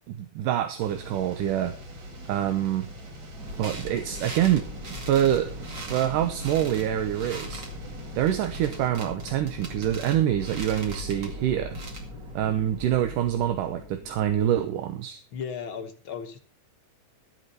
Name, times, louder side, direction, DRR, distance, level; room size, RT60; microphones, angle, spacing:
voice 1, 0.2-1.8 2.3-2.9 3.6-4.7 5.1-5.5 5.9-7.6 8.1-11.8 12.4-15.2, right 11 dB, 80° right, 8 dB, 2.5 m, -25 dB
sound 1, 0.8-8.9, equal, 55° right, 3.7 m, -43 dB
sound 2, 3.3-14.5, left 4 dB, 25° left, 2.2 m, -46 dB
sound 3, 3.4-13.6, right 1 dB, 35° right, 2.3 m, -39 dB
voice 2, 15.3-16.4, left 6 dB, 60° left, 6 dB, 1.4 m, -35 dB
13.5 x 8.2 x 5.6 m, 0.37 s
omnidirectional pair, 3.8 m